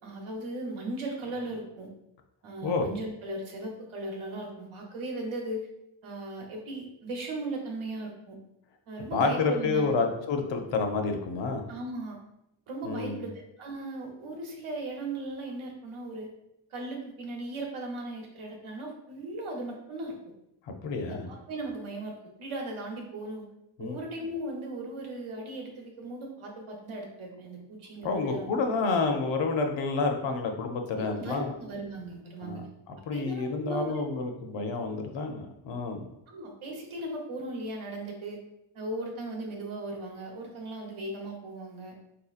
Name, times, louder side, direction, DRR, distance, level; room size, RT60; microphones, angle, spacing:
voice 1, 0.0-1.9 2.4-5.7 6.0-8.4 8.9-10.0 11.7-12.2 12.7-13.3 13.6-16.3 16.7-20.2 21.1-23.5 23.8-28.5 28.8-29.0 31.0-32.7 33.1-34.0 36.3-38.4 38.7-41.9, right 2 dB, 85° right, 0 dB, 1.0 m, -37 dB
voice 2, 9.1-11.6 12.8-13.3 20.7-21.3 23.8-24.0 28.0-31.5 32.4-36.0, left 4 dB, 70° left, 4 dB, 0.6 m, -29 dB
4.2 x 2.8 x 2.4 m, 0.83 s
wide cardioid pair, 160°, 47 cm